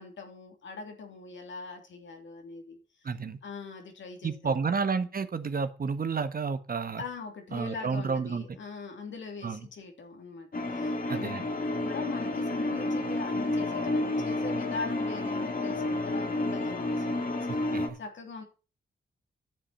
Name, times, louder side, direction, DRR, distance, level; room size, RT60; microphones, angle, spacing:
voice 1, 0.0-2.8 3.4-4.5 7.0-17.2 17.9-18.4, left 4 dB, 75° left, 2.9 m, -41 dB
voice 2, 3.0-3.4 4.2-7.0 7.5-8.5 9.4-9.7 11.1-11.4 17.5-18.0, right 5 dB, 50° right, 1.3 m, -31 dB
sound 1, 10.5-17.9, left 2 dB, 45° left, 2.3 m, -30 dB
9.9 x 7.3 x 5.6 m
cardioid pair, 60°, 19 cm